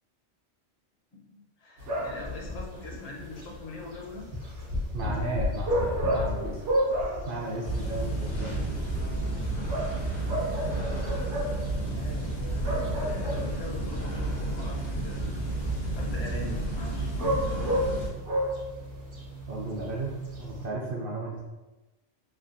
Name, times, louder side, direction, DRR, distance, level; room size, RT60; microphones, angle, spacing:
voice 1, 1.1-4.3 11.8-15.4 16.0-17.8, left 2 dB, 45° left, -2 dB, 0.6 m, -42 dB
sound 1, 1.8-20.7, equal, 90° right, 1.2 m, -33 dB
voice 2, 4.9-6.6 7.3-8.8 19.5-20.1 20.4-21.4, right 2 dB, 60° right, -2 dB, 0.7 m, -34 dB
sound 2, 7.6-18.1, right 2 dB, 75° left, 1.1 m, -31 dB
3.3 x 2.3 x 2.5 m, 1.1 s
omnidirectional pair, 1.1 m